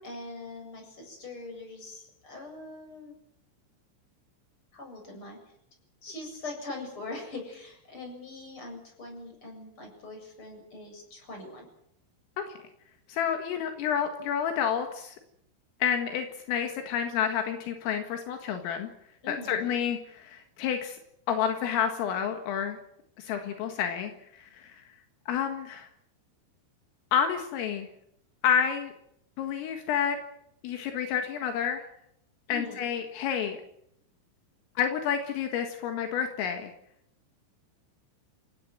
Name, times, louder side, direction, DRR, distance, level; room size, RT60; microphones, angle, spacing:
voice 1, 0.0-3.1 4.7-5.5 6.0-11.7 19.2-19.7 32.5-32.8, left 2 dB, 25° left, 3 dB, 8.1 m, -42 dB
voice 2, 13.1-15.2 15.8-18.9 19.3-21.0 21.3-22.8 23.2-24.8 25.3-25.9 27.1-27.9 28.4-28.9 29.4-30.2 30.6-31.8 32.5-33.6 34.8-36.7, left 8 dB, 80° left, 5 dB, 4.4 m, -29 dB
28.5 x 17.5 x 7.9 m, 0.75 s
omnidirectional pair, 6.0 m